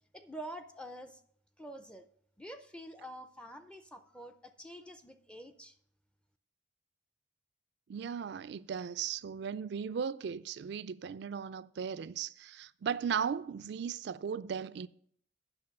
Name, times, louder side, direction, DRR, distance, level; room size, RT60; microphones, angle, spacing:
voice 1, 0.1-1.2 1.6-2.1 2.4-5.8, right 1 dB, 5° left, 0.4 m, -47 dB
voice 2, 7.9-14.9, right 7 dB, 60° right, 0.3 m, -37 dB
9.0 x 6.2 x 5.2 m
head